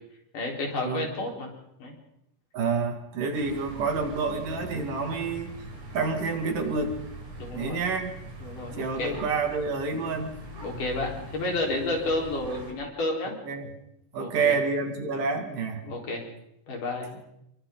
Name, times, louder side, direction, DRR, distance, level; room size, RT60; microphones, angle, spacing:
voice 1, 0.3-1.5 1.8-1.9 7.4-7.8 8.4-9.2 10.6-13.3 14.2-14.6 15.8-16.3 16.7-17.1, left 2 dB, 75° left, 0 dB, 6.0 m, -31 dB
voice 2, 2.5-5.5 5.9-7.0 7.5-8.1 8.8-10.3 13.5-13.7 14.1-15.8, right 4 dB, 90° right, 4 dB, 4.1 m, -28 dB
sound 1, 3.3-12.7, right 1 dB, 65° right, 5.5 m, -42 dB
28.0 x 23.5 x 3.9 m, 0.80 s
omnidirectional pair, 3.7 m